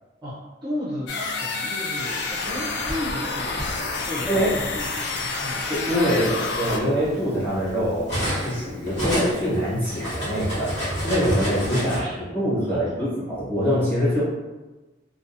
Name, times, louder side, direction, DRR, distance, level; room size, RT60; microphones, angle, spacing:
voice 1, 0.2-4.9 5.4-5.7 11.8-12.9, left 1 dB, 25° right, -8 dB, 0.5 m, -34 dB
sound 1, 1.1-6.8, left 3 dB, 65° left, 0.4 m, -29 dB
Cutlery silverware, 2.5-3.7 4.7-4.9 5.3-8.6 8.8-12.0, equal, 80° left, 1.3 m, -29 dB
voice 2, 5.7-12.0 12.3-14.2, equal, 10° left, -10 dB, 1.2 m, -24 dB
2.6 x 2.3 x 2.6 m, 1.1 s
head